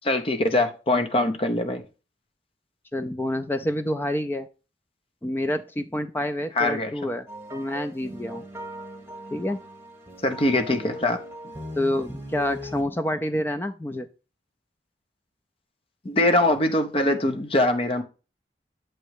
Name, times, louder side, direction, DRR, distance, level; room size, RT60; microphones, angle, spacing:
voice 1, 0.0-1.8 6.6-6.9 10.2-11.2 11.4-11.5 16.0-18.0, left 1 dB, 30° left, 0.7 m, -23 dB
voice 2, 2.9-4.5 5.2-7.3 7.5-8.4 9.3-9.6 11.8-14.1, left 1 dB, 10° left, 0.3 m, -28 dB
sound 1, 7.3-12.8, equal, 15° right, 1.3 m, -39 dB
7.6 x 3.1 x 4.6 m
head